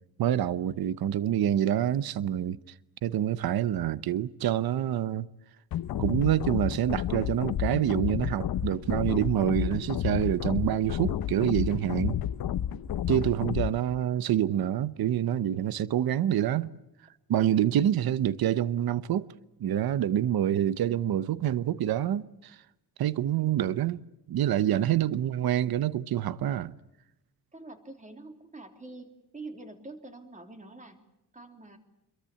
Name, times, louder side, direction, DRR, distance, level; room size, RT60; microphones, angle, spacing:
voice 1, 0.2-2.7 3.0-5.3 6.0-12.2 13.1-16.7 17.3-19.3 19.6-22.6 23.0-24.0 24.3-26.8, right 11 dB, 70° right, 0.9 m, -27 dB
sound 1, 5.7-13.7, left 11 dB, 70° left, 0.9 m, -31 dB
voice 2, 24.6-25.5 27.5-29.1 29.3-31.0 31.3-31.8, right 2 dB, 20° right, 3.4 m, -46 dB
28.5 x 22.5 x 8.5 m
wide cardioid pair, 160°, 38 cm